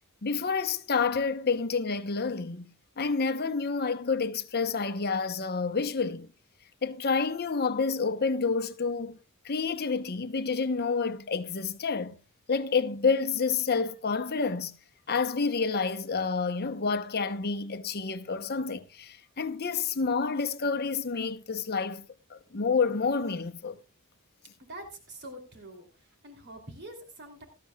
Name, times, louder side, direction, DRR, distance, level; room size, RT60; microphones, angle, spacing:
voice 1, 0.2-2.7 3.0-6.3 6.8-9.2 9.4-12.2 12.5-14.7 15.1-23.8, left 5 dB, 45° left, 0.8 m, -29 dB
voice 2, 24.7-25.9 26.2-27.4, right 1 dB, 50° right, 2.9 m, -45 dB
18.0 x 13.0 x 2.3 m
head